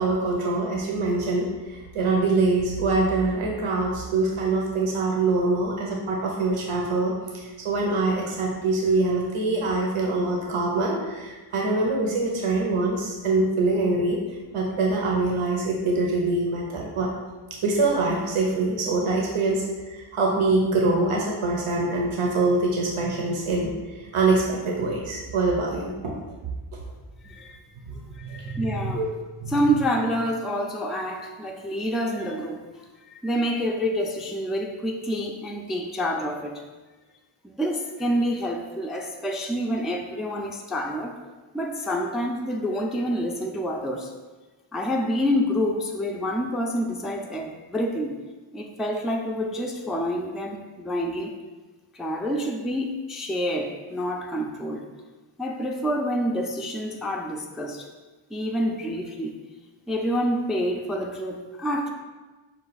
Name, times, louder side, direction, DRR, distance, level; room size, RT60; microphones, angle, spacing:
voice 1, 0.0-14.2 14.5-17.1 17.6-26.1 27.9-28.0 28.2-29.0 29.4-29.6, right 3 dB, 80° right, -1 dB, 0.8 m, -24 dB
voice 2, 27.2-27.6 27.9-29.0 29.5-36.6 37.4-41.1 41.5-44.1 44.7-48.2 48.5-51.3 51.9-54.9 55.4-57.9 58.3-59.3 59.9-61.9, equal, ahead, 1 dB, 0.3 m, -28 dB
5.3 x 2.3 x 4.0 m, 1.3 s
wide cardioid pair, 70°, 49 cm